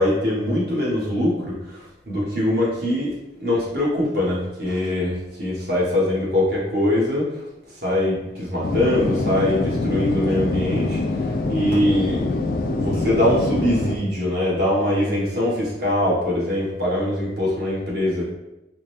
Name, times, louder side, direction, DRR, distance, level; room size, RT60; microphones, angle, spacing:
voice 1, 0.0-7.3 7.8-12.2 12.8-18.3, left 1 dB, 55° right, -6 dB, 1.4 m, -22 dB
sound 1, 8.6-14.0, left 2 dB, 50° left, 0.3 m, -25 dB
5.1 x 2.2 x 3.2 m, 0.94 s
head